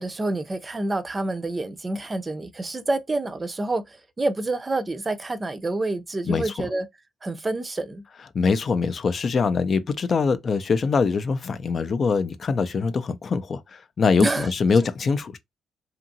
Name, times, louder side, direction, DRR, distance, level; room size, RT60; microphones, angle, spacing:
voice 1, 0.0-6.9 7.2-8.0 14.2-14.5, right 2 dB, 25° right, 0.5 m, -28 dB
voice 2, 6.3-6.7 8.3-15.4, left 5 dB, 45° left, 0.4 m, -23 dB
2.8 x 2.5 x 2.6 m
cardioid pair, 90°, 0 cm